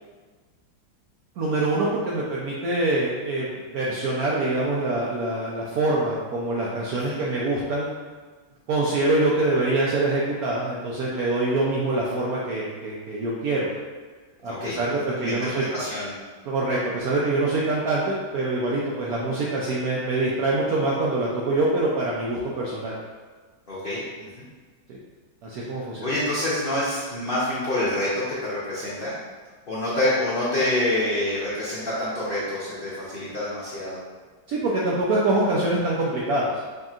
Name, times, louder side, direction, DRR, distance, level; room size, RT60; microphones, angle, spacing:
voice 1, 1.4-7.9 8.7-13.7 14.4-15.6 16.5-23.0 24.9-25.0 25.4-26.1 34.5-36.5, right 2 dB, 75° right, -5 dB, 0.8 m, -25 dB
voice 2, 14.4-14.8 15.1-16.1 23.7-24.4 26.0-29.2 29.7-34.0, left 1 dB, 65° left, -9 dB, 0.5 m, -27 dB
5.0 x 2.8 x 2.4 m, 1.4 s
omnidirectional pair, 2.1 m